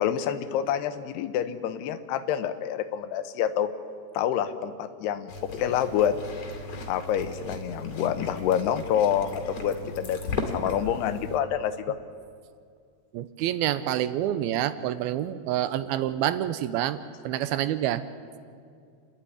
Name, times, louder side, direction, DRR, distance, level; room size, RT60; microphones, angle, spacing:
voice 1, 0.0-3.7 4.1-6.2 6.9-12.0, left 9 dB, 85° left, 11 dB, 3.0 m, -27 dB
sound 1, 5.3-11.4, left 3 dB, 45° left, 3.2 m, -36 dB
voice 2, 13.1-17.0 17.2-18.0, right 12 dB, 80° right, 13 dB, 2.5 m, -27 dB
29.0 x 12.0 x 9.8 m, 2.3 s
omnidirectional pair, 4.6 m